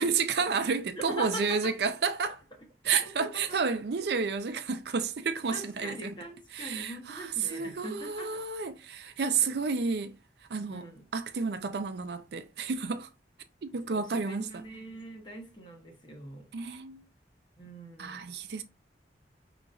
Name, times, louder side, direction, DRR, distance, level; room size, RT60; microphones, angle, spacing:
voice 1, 0.0-2.4 2.8-6.1 6.5-10.2 10.5-10.8 11.1-13.1 13.6-14.6 16.5-17.0 18.0-18.6, right 5 dB, 70° right, 0.5 m, -31 dB
voice 2, 1.0-1.7 2.8-3.4 4.5-4.6 5.5-8.4 9.2-9.6 10.7-11.0 13.9-16.5 17.6-18.3, equal, 25° left, 1.0 m, -42 dB
5.0 x 2.9 x 2.5 m
head